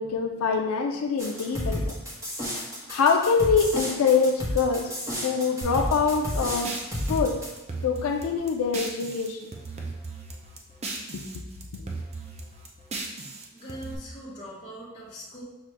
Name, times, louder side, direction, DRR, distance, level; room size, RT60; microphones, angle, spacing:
voice 1, 0.0-1.9 2.9-7.4 7.8-9.5 11.1-11.4 11.7-11.9, left 5 dB, 85° left, 3 dB, 0.4 m, -25 dB
sound 1, 1.2-7.5, equal, 15° right, 1.1 m, -31 dB
sound 2, 5.6-9.3 9.5-11.4 11.6-13.9, right 3 dB, 30° right, 0.5 m, -37 dB
voice 2, 13.5-15.4, equal, 20° left, -12 dB, 1.1 m, -41 dB
5.9 x 2.5 x 3.2 m, 1.0 s
head